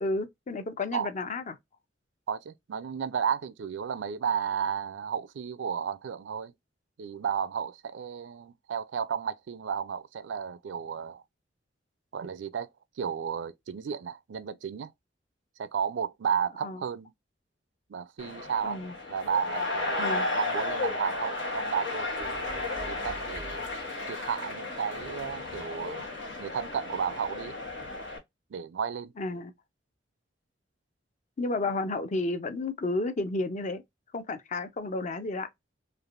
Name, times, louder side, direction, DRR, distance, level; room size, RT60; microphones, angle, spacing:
voice 1, 0.0-1.6 16.6-16.8 18.6-18.9 20.0-20.3 29.2-29.5 31.4-33.8 34.1-35.5, left 2 dB, 40° left, 0.5 m, -32 dB
voice 2, 2.3-6.5 7.0-11.2 12.1-12.7 13.0-14.9 15.6-17.1 17.9-18.8 19.1-23.7 24.1-26.1 26.4-27.5 28.5-29.1, right 7 dB, 75° right, 0.4 m, -33 dB
sound 1, 18.2-28.2, left 2 dB, 90° left, 1.3 m, -34 dB
3.3 x 2.5 x 2.4 m
head